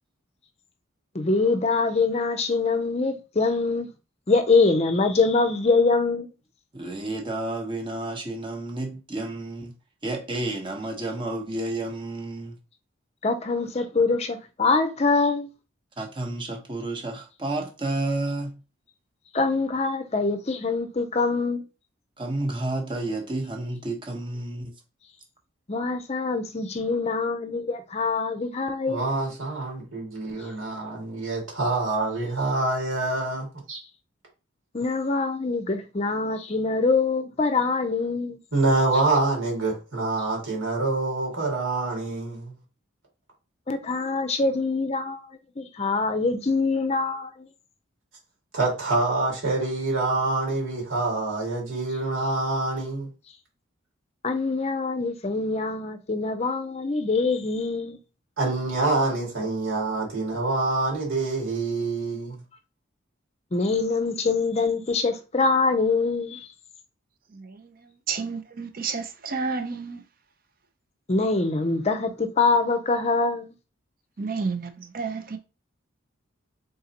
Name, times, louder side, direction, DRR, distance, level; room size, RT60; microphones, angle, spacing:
voice 1, 1.1-3.9 4.3-6.3 13.2-15.5 19.3-21.6 25.7-29.0 34.7-38.4 43.7-45.2 45.6-47.5 54.2-58.0 63.5-66.5 71.1-73.5, left 3 dB, 30° left, 0.5 m, -24 dB
voice 2, 6.7-9.7 10.0-12.6 16.0-18.5 22.2-24.7, right 2 dB, 25° right, 0.8 m, -31 dB
voice 3, 28.9-33.8 38.5-42.6 48.5-53.1 58.4-62.4, right 2 dB, 85° right, 2.2 m, -26 dB
voice 4, 67.3-67.7 68.1-70.0 74.2-75.4, right 4 dB, 45° right, 0.6 m, -31 dB
3.9 x 3.8 x 2.9 m
head